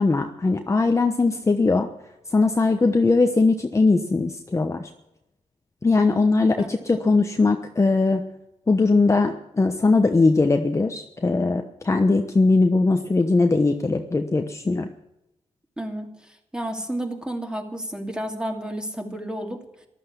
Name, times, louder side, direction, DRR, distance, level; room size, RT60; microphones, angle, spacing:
voice 1, 0.0-1.9 2.3-4.9 5.8-8.2 8.7-14.9, left 3 dB, 25° left, 5 dB, 1.0 m, -20 dB
voice 2, 15.8-19.6, right 1 dB, 5° right, 2 dB, 2.7 m, -31 dB
14.0 x 12.0 x 6.9 m, 0.87 s
cardioid pair, 90°, 12 cm